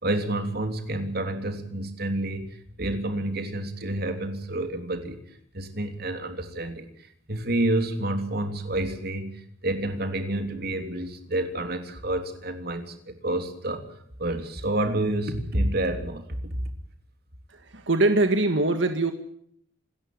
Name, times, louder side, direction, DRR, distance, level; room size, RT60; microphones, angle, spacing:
voice 1, 0.0-5.2 5.5-6.9 7.3-13.8 14.2-16.6, right 1 dB, 55° right, 6 dB, 3.3 m, -29 dB
voice 2, 17.5-19.1, right 2 dB, 80° right, 6 dB, 1.9 m, -22 dB
27.5 x 13.5 x 9.4 m, 0.66 s
head